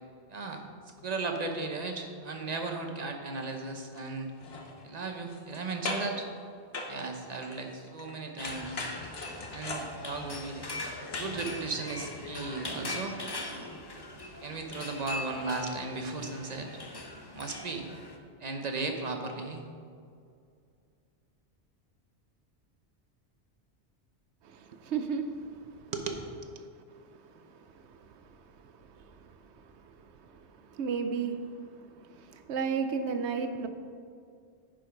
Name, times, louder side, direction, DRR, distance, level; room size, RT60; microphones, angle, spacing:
voice 1, 0.3-0.6 1.0-4.3 4.8-6.3 6.9-8.9 9.5-10.6 11.1-13.2 14.4-16.7 17.3-17.9 18.4-19.6 25.9-26.2, right 3 dB, 40° right, 4 dB, 0.9 m, -36 dB
sound 1, 3.9-4.1 4.4-5.6 5.8-6.2 6.7-8.1 8.4-11.4 11.8-11.9, left 2 dB, 65° left, 1.2 m, -39 dB
sound 2, 8.4-18.2, left 2 dB, 25° left, 0.7 m, -41 dB
voice 2, 24.4-25.9 26.6-33.7, right 5 dB, 75° right, 8 dB, 1.0 m, -36 dB
10.5 x 5.1 x 5.2 m, 2.3 s
omnidirectional pair, 1.2 m